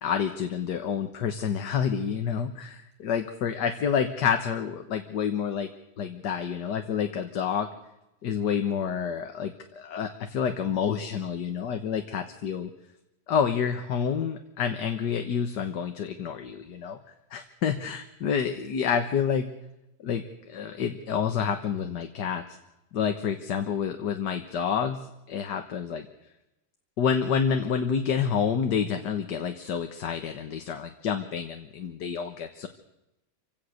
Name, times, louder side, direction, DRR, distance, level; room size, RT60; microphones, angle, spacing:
voice 1, 0.0-5.7 6.0-7.7 8.2-12.7 13.3-17.0 17.3-19.5 20.0-22.5 22.9-26.1 27.0-32.7, left 7 dB, 65° left, 7 dB, 1.8 m, -28 dB
27.5 x 16.5 x 6.5 m, 0.92 s
omnidirectional pair, 2.1 m